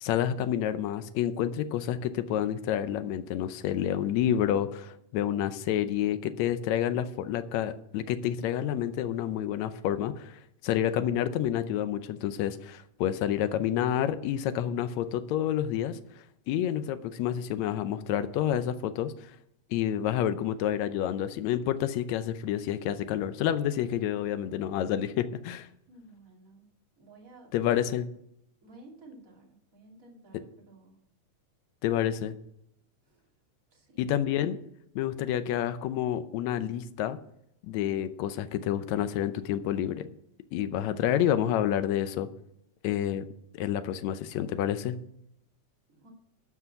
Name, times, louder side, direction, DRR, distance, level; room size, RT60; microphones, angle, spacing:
voice 1, 0.0-16.0 16.5-19.3 19.7-25.7 27.5-28.1 31.8-32.4 34.0-34.6 35.0-37.2 37.6-40.1 40.5-42.3 42.8-43.2 43.5-45.0, left 10 dB, 75° left, 11 dB, 1.8 m, -29 dB
voice 2, 25.9-26.6 27.0-27.5 28.6-31.0 33.1-33.2 33.7-34.1 45.9-46.1, right 2 dB, 25° right, -2 dB, 2.8 m, -53 dB
12.0 x 6.0 x 6.9 m, 0.76 s
omnidirectional pair, 3.7 m